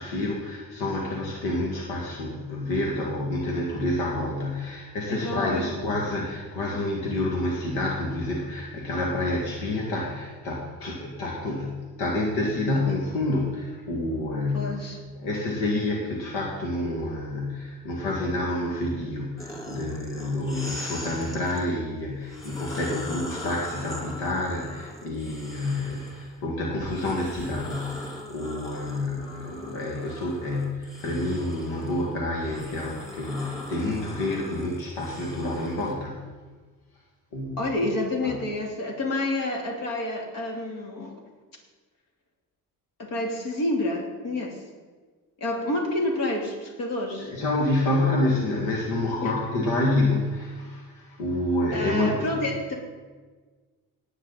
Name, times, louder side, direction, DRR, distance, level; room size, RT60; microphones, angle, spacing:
voice 1, 0.0-14.8 15.2-36.3 37.3-37.6 38.2-38.3 47.2-52.5, left 2 dB, 90° left, -2 dB, 2.1 m, -28 dB
voice 2, 5.1-5.8 12.7-12.8 14.5-15.0 37.6-41.1 43.0-44.6 45.4-47.3 49.2-49.3 51.7-52.8, left 1 dB, 65° left, 0 dB, 3.2 m, -29 dB
sound 1, 19.4-21.6 22.2-26.3 26.8-35.9, left 1 dB, 10° left, 3.4 m, -40 dB
18.5 x 9.0 x 4.1 m, 1.4 s
cardioid pair, 125°, 36 cm